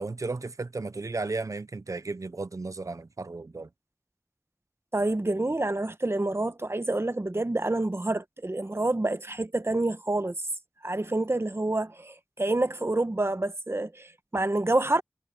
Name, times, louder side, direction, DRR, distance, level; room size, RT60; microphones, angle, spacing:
voice 1, 0.0-3.7, right 3 dB, 75° right, 0.5 m, -34 dB
voice 2, 4.9-10.3 10.8-15.0, right 2 dB, 50° right, 1.2 m, -28 dB
wide cardioid pair, 45°, 6 cm